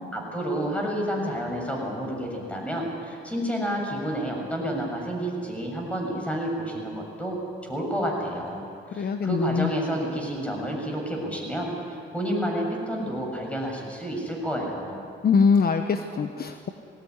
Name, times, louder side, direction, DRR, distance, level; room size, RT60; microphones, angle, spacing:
voice 1, 0.1-7.4 7.6-8.6 8.9-15.0, right 1 dB, 5° left, 0 dB, 7.1 m, -30 dB
voice 2, 9.0-9.7 15.2-16.7, left 5 dB, 50° left, 7 dB, 1.2 m, -23 dB
20.5 x 18.0 x 9.7 m, 2.4 s
cardioid pair, 90°, 20 cm